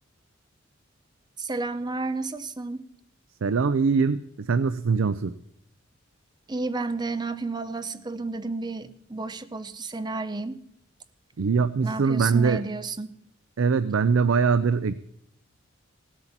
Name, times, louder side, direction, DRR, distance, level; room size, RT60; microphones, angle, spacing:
voice 1, 1.4-2.9 6.5-10.6 11.8-13.1, right 3 dB, 20° right, 0.6 m, -31 dB
voice 2, 3.4-5.3 11.4-12.6 13.6-14.9, right 5 dB, 75° right, 0.5 m, -22 dB
16.5 x 8.1 x 7.2 m
head